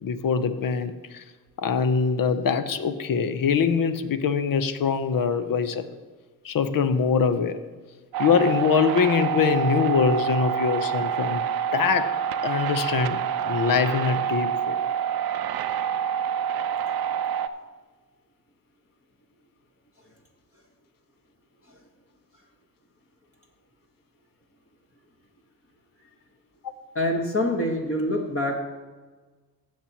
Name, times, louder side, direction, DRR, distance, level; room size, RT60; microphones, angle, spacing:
voice 1, 0.0-1.2 1.6-5.9 6.4-7.6 8.2-11.4 11.7-13.2 13.4-14.7, left 6 dB, 50° left, 11 dB, 0.9 m, -23 dB
sound 1, 8.1-17.5, right 8 dB, 55° right, 0.7 m, -27 dB
voice 2, 26.9-28.6, left 1 dB, 30° left, 0 dB, 1.7 m, -25 dB
15.5 x 7.4 x 3.0 m, 1.3 s
supercardioid pair, 65°, 45 cm